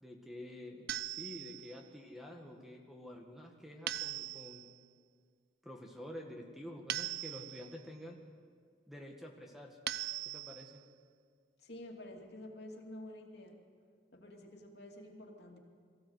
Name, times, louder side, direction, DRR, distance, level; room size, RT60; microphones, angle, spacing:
voice 1, 0.0-4.7 5.6-8.2 8.9-9.8 10.2-10.8, left 1 dB, ahead, 1 dB, 1.7 m, -49 dB
sound 1, 0.9-1.8 3.9-4.7 6.9-7.8 9.9-10.8, right 14 dB, 60° right, 0.6 m, -40 dB
voice 2, 11.6-13.6 14.1-15.6, left 1 dB, 60° left, 1 dB, 2.7 m, -49 dB
22.5 x 16.0 x 8.0 m, 2.1 s
head